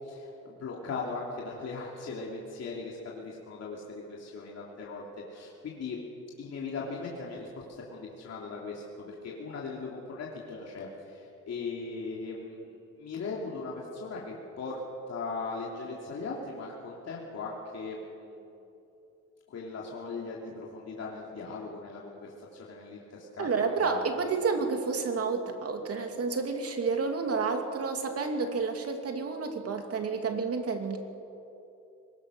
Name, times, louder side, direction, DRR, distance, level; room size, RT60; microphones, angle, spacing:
voice 1, 0.0-6.0 6.4-14.8 15.1-18.5 19.5-24.0 24.3-24.4, left 4 dB, 55° left, -3 dB, 3.1 m, -39 dB
voice 2, 23.4-31.0, right 4 dB, 50° right, 4 dB, 2.9 m, -30 dB
22.0 x 20.5 x 6.4 m, 2.8 s
cardioid pair, 90°, 30 cm